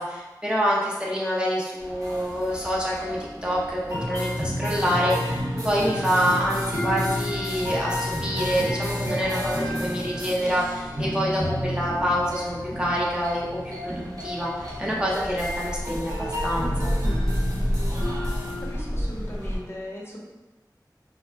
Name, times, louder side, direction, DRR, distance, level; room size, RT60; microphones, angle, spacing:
voice 1, 0.0-16.9, equal, 10° right, -5 dB, 0.5 m, -27 dB
sound 1, 1.8-19.6, equal, 50° right, 0.7 m, -29 dB
voice 2, 18.6-20.2, equal, 35° left, -3 dB, 0.6 m, -38 dB
2.3 x 2.0 x 3.2 m, 1.2 s
wide cardioid pair, 40°, 7 cm